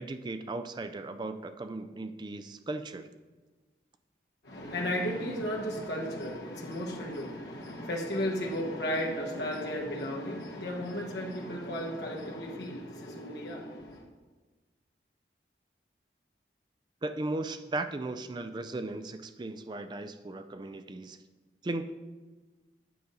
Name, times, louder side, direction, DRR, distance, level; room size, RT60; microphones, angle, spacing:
voice 1, 0.0-3.1 17.0-21.2 21.6-21.9, right 2 dB, 25° right, 9 dB, 0.4 m, -36 dB
voice 2, 4.4-14.1, equal, 75° left, -2 dB, 1.2 m, -34 dB
9.4 x 5.2 x 4.0 m, 1.3 s
head